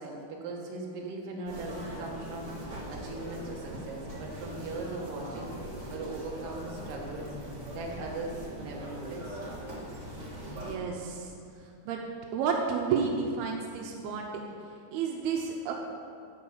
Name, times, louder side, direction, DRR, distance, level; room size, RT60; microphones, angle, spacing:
voice 1, 0.0-7.3 7.7-9.4, right 2 dB, 65° right, -2 dB, 3.0 m, -39 dB
sound 1, 1.5-10.7, equal, 35° right, 1.2 m, -41 dB
voice 2, 10.4-11.3 11.9-12.0 12.3-14.4 14.9-15.7, right 6 dB, 85° right, 1 dB, 2.8 m, -31 dB
12.5 x 5.5 x 7.5 m, 2.4 s
omnidirectional pair, 4.4 m